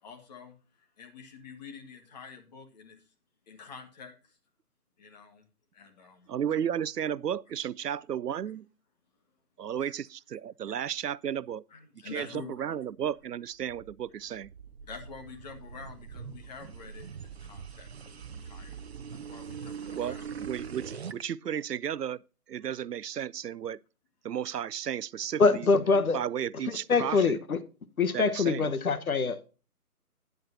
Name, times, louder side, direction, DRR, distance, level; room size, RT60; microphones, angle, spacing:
voice 1, 0.0-0.6 1.0-3.0 3.5-4.1 5.0-5.4 5.7-6.3 9.8-9.9 11.7-12.6 14.8-18.7 19.1-20.3, left 5 dB, 25° left, 1.8 m, -47 dB
voice 2, 6.3-8.7 9.6-11.6 12.1-14.5 19.9-22.2 22.5-23.8 24.2-25.7 26.1-27.4 28.1-28.7, right 9 dB, 85° right, 0.6 m, -33 dB
sound 1, 13.2-21.2, right 6 dB, 45° right, 0.8 m, -43 dB
voice 3, 25.4-26.2 26.7-27.6 28.0-29.5, left 4 dB, 65° left, 1.3 m, -24 dB
12.0 x 9.5 x 2.7 m
figure-of-eight pair, 150°, 47 cm